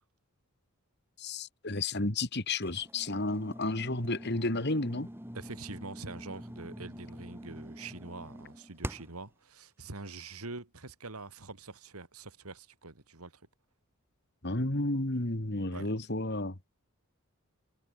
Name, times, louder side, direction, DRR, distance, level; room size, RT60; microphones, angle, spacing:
voice 1, 1.2-5.1 14.4-16.6, left 2 dB, 50° left, 2.3 m, -32 dB
sound 1, 2.6-9.3, equal, 10° right, 5.4 m, -45 dB
voice 2, 5.3-13.4 15.7-15.9, right 3 dB, 90° right, 2.8 m, -45 dB
head